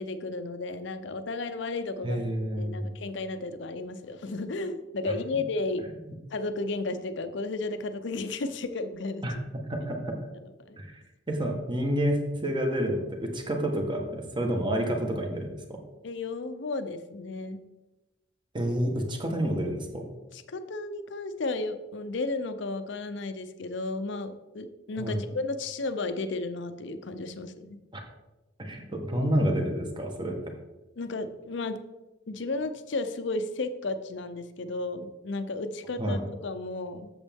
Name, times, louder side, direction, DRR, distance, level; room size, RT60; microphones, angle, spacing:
voice 1, 0.0-2.2 2.6-5.8 6.3-9.2 10.4-10.8 16.0-17.6 20.3-27.8 31.0-31.8 32.3-37.1, left 3 dB, 65° left, 9 dB, 0.6 m, -33 dB
voice 2, 2.0-2.9 5.0-5.1 9.2-9.3 9.7-10.2 10.8-11.0 11.3-15.5 18.5-20.1 25.0-25.2 27.9-28.0 28.6-30.3 36.0-36.2, equal, 25° right, 2 dB, 1.3 m, -29 dB
8.1 x 7.1 x 3.6 m, 1.0 s
head